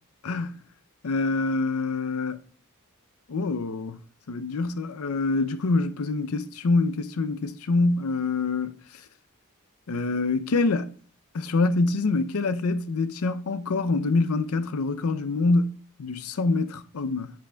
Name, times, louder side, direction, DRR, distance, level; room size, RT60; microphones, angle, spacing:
voice 1, 1.0-2.4 3.3-4.0 4.3-8.7 9.9-10.9 11.3-17.3, left 3 dB, 85° left, 0.5 m, -25 dB
9.8 x 5.2 x 2.2 m
head